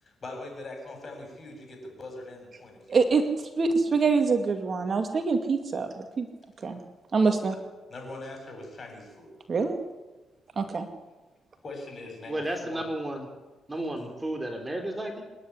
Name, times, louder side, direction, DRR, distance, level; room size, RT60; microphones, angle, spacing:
voice 1, 0.0-3.0 7.9-9.3 11.6-12.9 13.7-14.1, left 2 dB, 35° left, 2 dB, 7.9 m, -42 dB
voice 2, 2.9-3.2 3.6-6.3 6.6-6.8 7.1-7.6 9.5-9.8 10.6-10.9, right 4 dB, 40° right, 5 dB, 2.1 m, -25 dB
voice 3, 12.3-13.3 13.7-15.2, right 1 dB, 15° right, 4 dB, 3.3 m, -32 dB
26.5 x 10.5 x 10.0 m, 1.2 s
cardioid pair, 90°, 0 cm